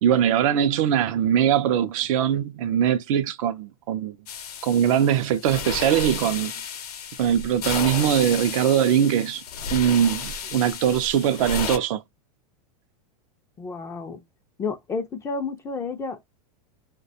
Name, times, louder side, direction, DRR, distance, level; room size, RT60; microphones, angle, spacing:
voice 1, 0.0-4.2 4.6-6.5 7.2-9.4 9.7-12.0, right 9 dB, 60° right, 0.4 m, -21 dB
sound 1, 4.3-11.8, left 6 dB, 90° left, 0.7 m, -33 dB
voice 2, 13.6-14.2 14.6-16.2, left 4 dB, 15° left, 0.3 m, -31 dB
2.3 x 2.2 x 2.7 m
supercardioid pair, 135°, 19 cm